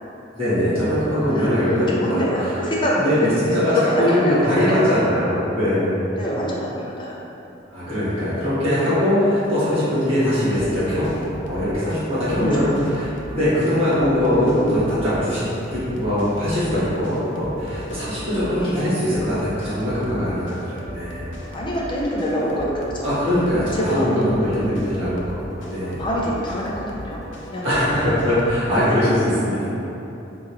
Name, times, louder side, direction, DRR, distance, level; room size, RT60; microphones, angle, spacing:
voice 1, 0.3-2.2 3.0-6.0 7.7-11.2 11.4-15.4 15.7-21.3 23.0-26.1 27.6-29.7, left 1 dB, 35° right, -14 dB, 1.3 m, -21 dB
voice 2, 1.3-3.6 4.1-4.4 6.2-7.1 7.8-7.9 12.3-13.0 13.6-13.7 18.1-18.3 18.6-18.8 21.5-23.1 23.7-24.7 25.8-28.2, equal, 25° left, -5 dB, 0.5 m, -26 dB
sound 1, 10.4-28.6, equal, 80° left, 0.5 m, -37 dB
4.0 x 2.9 x 2.6 m, 2.9 s
head